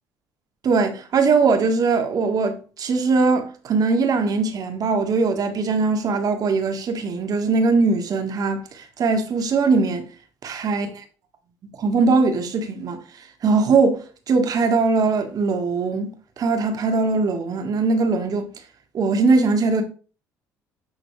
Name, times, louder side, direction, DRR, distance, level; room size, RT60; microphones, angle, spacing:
voice 1, 0.6-10.1 10.4-10.9 11.8-13.0 13.4-14.0 14.3-18.5 18.9-19.8, right 4 dB, 50° right, 1.6 m, -21 dB
9.8 x 4.1 x 3.3 m
hypercardioid pair, 65°, 8 cm